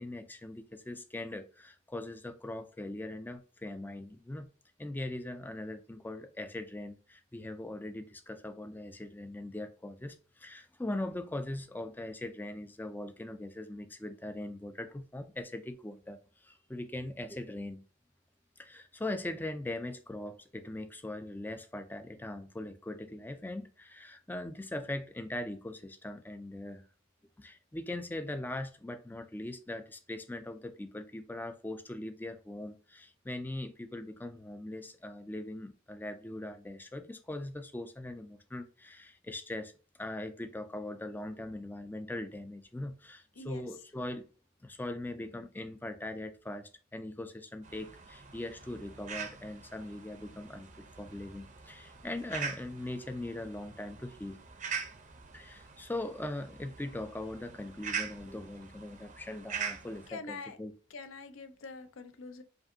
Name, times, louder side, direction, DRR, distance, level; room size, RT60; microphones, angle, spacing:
voice 1, 0.0-4.5 4.8-17.8 18.6-26.8 27.4-39.7 40.0-44.3 44.6-50.7 51.0-54.4 55.3-60.7, left 1 dB, 10° left, 0.3 m, -40 dB
voice 2, 43.4-43.7 60.1-60.6 60.9-62.4, left 3 dB, 70° left, 0.6 m, -44 dB
sound 1, 47.6-60.1, right 6 dB, 40° right, 0.6 m, -43 dB
5.1 x 2.6 x 2.6 m
head